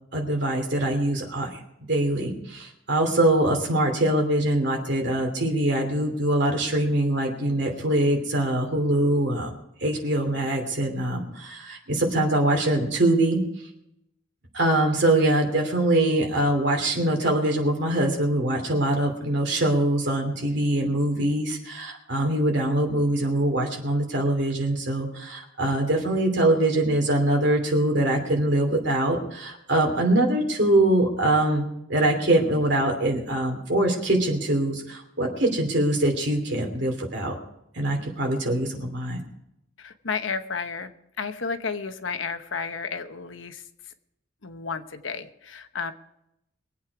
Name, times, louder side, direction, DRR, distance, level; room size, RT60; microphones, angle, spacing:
voice 1, 0.1-1.6 1.9-9.5 9.8-13.4 14.5-37.3 37.7-39.2, right 1 dB, 60° right, 2 dB, 3.0 m, -23 dB
voice 2, 39.8-43.9 44.4-45.9, left 5 dB, 75° left, 9 dB, 1.0 m, -32 dB
23.0 x 8.5 x 4.8 m, 0.82 s
head